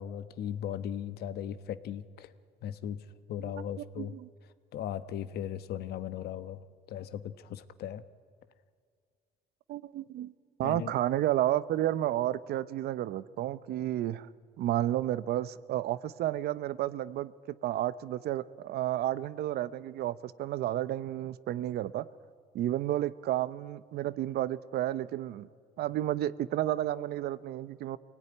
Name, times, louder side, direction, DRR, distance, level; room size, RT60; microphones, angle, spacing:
voice 1, 0.0-2.3 2.6-3.0 3.3-4.1 4.7-6.6 6.9-8.0 10.6-10.9, left 10 dB, 70° left, 13 dB, 1.1 m, -37 dB
voice 2, 4.0-4.3 9.7-10.3 10.6-14.3 14.6-22.1 22.5-25.5 25.8-28.0, right 13 dB, 70° right, 16 dB, 0.8 m, -31 dB
25.0 x 18.0 x 9.8 m, 2.1 s
cardioid pair, 110°, 17 cm